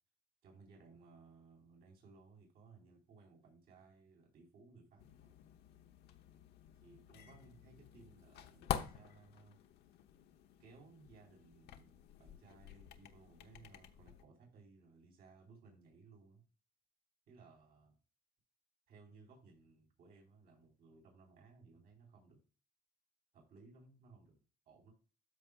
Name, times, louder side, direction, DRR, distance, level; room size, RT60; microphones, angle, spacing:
voice 1, 0.4-5.3 6.8-9.6 10.6-16.4 17.3-18.0 18.9-22.4 23.3-24.9, right 4 dB, 65° right, -1 dB, 4.2 m, -61 dB
sound 1, 5.0-14.2, left 10 dB, 75° left, 0.9 m, -48 dB
13.0 x 5.0 x 2.4 m, 0.36 s
cardioid pair, 110°, 17 cm